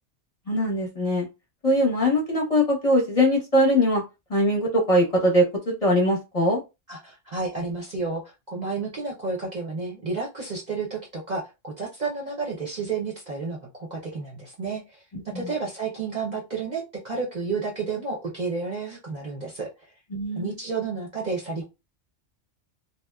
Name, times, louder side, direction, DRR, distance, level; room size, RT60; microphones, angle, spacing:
voice 1, 0.5-1.3 1.6-4.0 4.3-6.6 15.1-15.2 20.1-20.5, equal, 35° left, -3 dB, 0.7 m, -21 dB
voice 2, 6.9-19.9 20.3-21.7, right 4 dB, 45° right, -2 dB, 0.7 m, -31 dB
2.7 x 2.0 x 2.2 m, 0.25 s
omnidirectional pair, 1.2 m